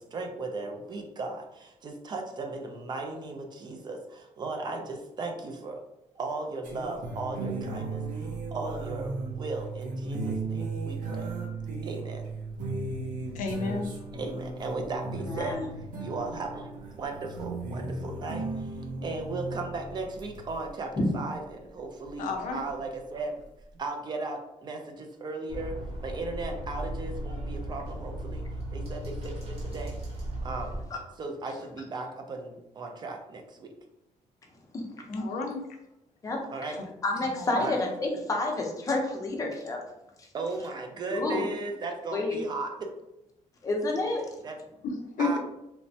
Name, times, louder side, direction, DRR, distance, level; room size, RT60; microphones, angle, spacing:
voice 1, 0.0-5.8 6.2-11.3 11.8-12.2 14.1-23.3 23.7-28.4 28.7-30.0 30.4-30.8 31.2-33.7 36.5-36.8 37.5-37.8 40.3-42.9 44.4-44.6 45.2-45.4, right 3 dB, 35° right, 3 dB, 0.3 m, -36 dB
sound 1, 6.6-20.7 22.0-22.1 23.3-23.4, right 3 dB, 80° right, 0.6 m, -36 dB
voice 2, 13.3-13.9 22.2-22.6 35.1-35.6 37.4-37.7 44.8-45.4, left 3 dB, 75° left, 3 dB, 0.5 m, -31 dB
voice 3, 15.3-15.6 21.0-21.1 34.7-34.8 35.1-35.2 36.2-36.4 37.0-39.8 40.2-40.3 41.1-41.4 42.1-42.4 43.6-44.2, left 2 dB, 25° left, 0 dB, 0.5 m, -29 dB
sound 2, 25.5-30.8, right 1 dB, 50° right, 1.0 m, -36 dB
3.1 x 2.0 x 2.6 m, 0.88 s
cardioid pair, 155°, 13 cm